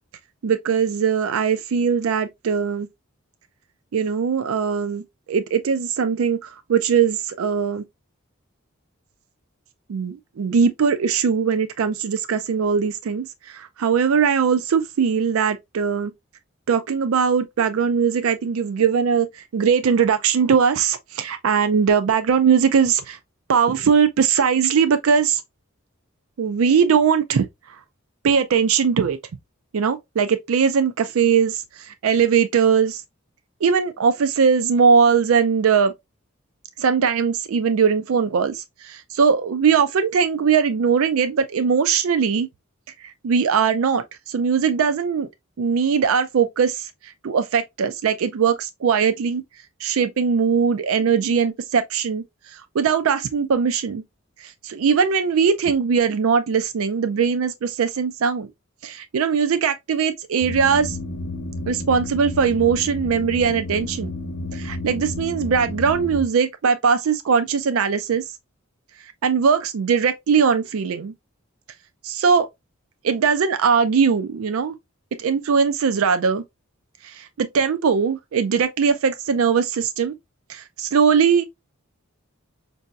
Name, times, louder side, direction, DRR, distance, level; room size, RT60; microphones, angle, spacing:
voice 1, 0.4-2.9 3.9-5.0 5.3-7.8 9.9-16.1 16.7-23.2 23.5-25.4 26.4-27.5 28.2-29.2 29.7-33.0 33.6-35.9 36.8-42.5 43.0-45.3 45.6-46.9 47.2-49.4 49.8-52.2 52.7-54.0 54.4-58.5 58.8-61.0 61.7-64.1 64.5-68.2 69.2-71.1 72.0-72.5 73.0-74.7 75.2-76.4 77.0-80.1 80.5-81.4, right 6 dB, 80° right, 0.4 m, -20 dB
sound 1, 60.4-66.2, left 2 dB, 65° left, 0.8 m, -31 dB
5.4 x 2.6 x 2.3 m
head